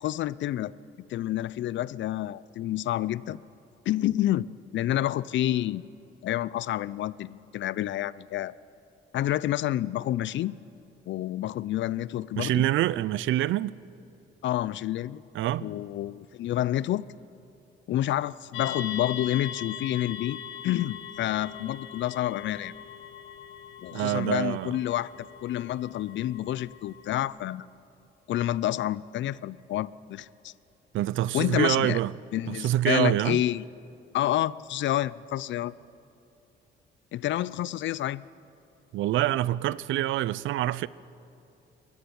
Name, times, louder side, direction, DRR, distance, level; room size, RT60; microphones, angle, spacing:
voice 1, 0.0-0.7 1.1-3.4 3.9-5.8 6.2-8.5 9.1-10.5 11.1-12.6 14.4-15.2 15.6-17.1 17.9-20.4 20.6-22.7 23.8-27.7 28.3-30.5 31.3-32.0 32.3-33.6 34.1-35.7 37.1-38.2, left 13 dB, 70° left, 0.5 m, -29 dB
voice 2, 12.4-13.8 15.3-15.7 23.9-24.8 30.9-32.1 32.5-33.4 38.9-40.9, right 14 dB, 80° right, 0.5 m, -26 dB
sound 1, 18.5-27.2, left 8 dB, 90° left, 1.7 m, -41 dB
21.5 x 13.5 x 9.6 m
cardioid pair, 90°, 20 cm